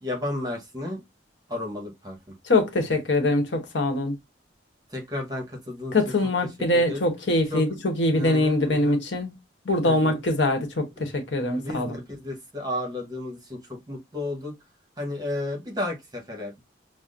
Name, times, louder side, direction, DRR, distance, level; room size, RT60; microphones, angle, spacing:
voice 1, 0.0-1.0 1.5-2.3 4.9-5.9 6.7-7.0 7.5-7.6 8.1-9.0 9.8-10.2 11.0-11.1 11.6-14.5 15.0-16.6, left 1 dB, 20° right, 1.0 m, -33 dB
voice 2, 2.4-4.2 5.9-9.3 9.6-12.0, left 2 dB, 75° left, 1.0 m, -23 dB
5.8 x 2.0 x 2.5 m
head